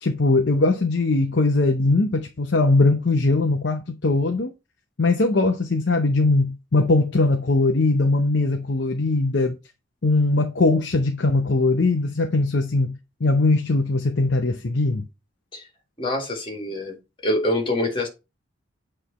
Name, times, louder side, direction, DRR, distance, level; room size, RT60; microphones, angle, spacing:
voice 1, 0.0-4.5 5.0-9.6 10.0-15.0, left 2 dB, 55° left, 0.7 m, -20 dB
voice 2, 16.0-16.9 17.2-18.1, left 1 dB, 25° left, 2.0 m, -25 dB
8.1 x 3.3 x 4.2 m
head